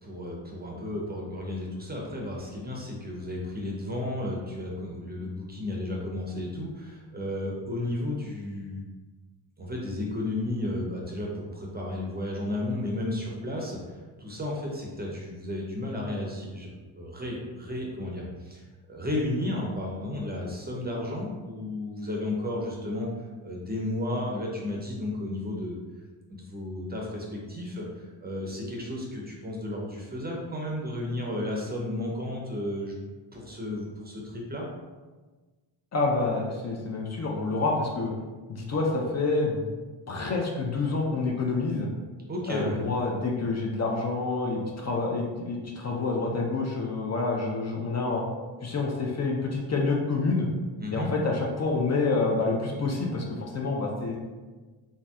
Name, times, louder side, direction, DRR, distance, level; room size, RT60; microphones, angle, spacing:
voice 1, 0.0-8.8 9.6-23.1 23.4-25.8 26.5-33.0 33.3-34.7 42.3-42.8 50.8-51.1, left 1 dB, 20° right, -1 dB, 0.5 m, -33 dB
voice 2, 35.9-38.1 38.5-39.7 40.1-41.9 42.5-48.2 48.6-50.5 50.9-54.2, left 3 dB, 35° left, -1 dB, 0.5 m, -28 dB
3.2 x 2.6 x 2.3 m, 1.3 s
cardioid pair, 75°, 46 cm